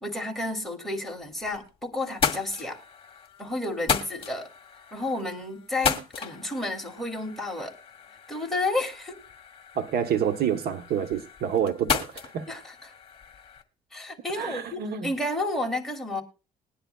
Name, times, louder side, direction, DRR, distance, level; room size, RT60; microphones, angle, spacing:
voice 1, 0.0-2.8 3.4-4.5 4.9-7.7 8.3-9.2 12.5-12.9 13.9-16.2, left 2 dB, ahead, 2.8 m, -31 dB
sound 1, 1.2-1.7 2.0-13.6, left 6 dB, 30° left, 2.0 m, -34 dB
voice 2, 9.8-12.5 14.4-15.1, right 8 dB, 70° right, 1.0 m, -28 dB
21.0 x 10.0 x 2.3 m
cardioid pair, 110°, 17 cm